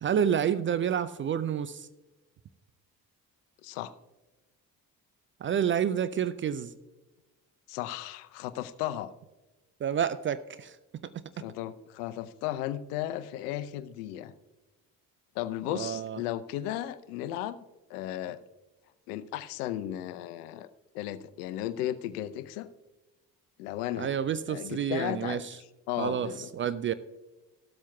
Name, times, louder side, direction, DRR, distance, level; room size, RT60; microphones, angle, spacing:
voice 1, 0.0-1.9 5.4-6.7 9.8-10.8 11.0-11.1 15.7-16.2 24.0-25.5 26.0-26.9, right 8 dB, 25° right, 14 dB, 0.4 m, -29 dB
voice 2, 3.6-3.9 7.7-9.1 11.4-14.3 15.3-17.6 17.9-18.4 19.1-20.7 20.9-22.7 23.6-24.1 24.5-25.4 25.9-26.5, left 13 dB, 65° left, 14 dB, 0.7 m, -35 dB
15.0 x 12.5 x 2.3 m, 1.1 s
figure-of-eight pair, 45°, 50 cm